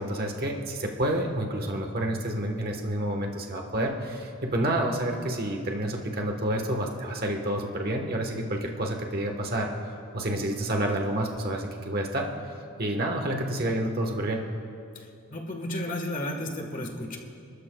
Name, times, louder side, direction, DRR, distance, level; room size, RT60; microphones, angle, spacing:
voice 1, 0.0-9.7 10.1-12.3 12.8-14.4, right 1 dB, 45° right, 2 dB, 1.3 m, -29 dB
voice 2, 14.9-17.2, left 1 dB, 35° left, 2 dB, 1.5 m, -33 dB
29.0 x 13.0 x 2.3 m, 2.5 s
head